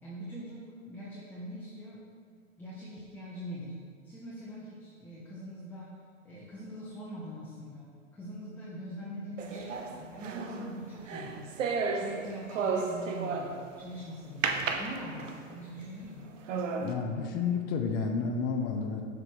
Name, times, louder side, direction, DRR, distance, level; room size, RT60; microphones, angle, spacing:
voice 1, 0.0-2.0 2.6-3.8 4.0-5.9 6.2-11.5 12.0-16.3, equal, 5° left, -7 dB, 0.8 m, -43 dB
sound 1, 9.4-13.8 14.4-15.5 16.0-16.1 16.5-16.9, right 5 dB, 70° right, 0.7 m, -33 dB
voice 2, 16.7-19.0, left 5 dB, 25° left, 3 dB, 0.4 m, -31 dB
6.6 x 4.8 x 3.0 m, 2.1 s
figure-of-eight pair, 95°, 39 cm